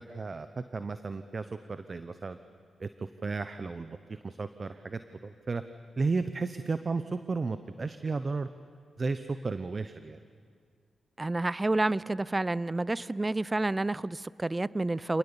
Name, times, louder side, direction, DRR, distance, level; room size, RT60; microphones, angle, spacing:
voice 1, 0.0-2.4 2.8-5.6 6.0-8.5 9.0-10.2, right 4 dB, 45° right, 11 dB, 0.8 m, -34 dB
voice 2, 11.2-15.2, right 2 dB, 25° right, 20 dB, 0.5 m, -29 dB
26.5 x 19.5 x 7.1 m, 2.2 s
supercardioid pair, 40°, 0 cm